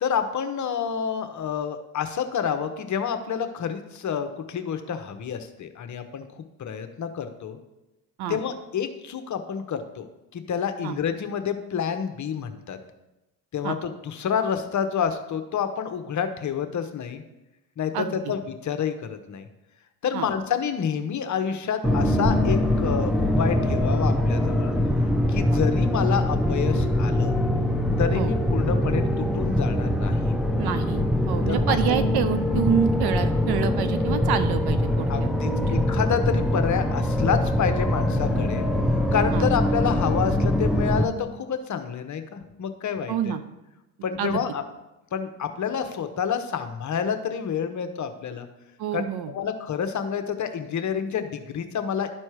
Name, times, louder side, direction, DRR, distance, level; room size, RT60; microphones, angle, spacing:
voice 1, 0.0-7.6 8.3-10.1 10.3-12.8 13.5-17.2 17.8-19.5 20.0-24.8 25.3-27.3 28.0-30.3 31.5-31.8 35.1-38.7 39.1-43.3 44.0-44.6 45.1-48.5 48.9-52.1, left 7 dB, 40° left, 8 dB, 1.0 m, -28 dB
voice 2, 17.9-18.3 20.1-20.3 25.5-25.6 28.1-28.3 30.6-35.8 39.3-39.5 43.1-43.4 44.2-44.4 48.8-49.3, right 8 dB, 55° right, 11 dB, 0.8 m, -28 dB
sound 1, 21.8-41.0, left 1 dB, ahead, 0.8 m, -23 dB
12.0 x 4.4 x 4.8 m, 0.97 s
hypercardioid pair, 70°, 47 cm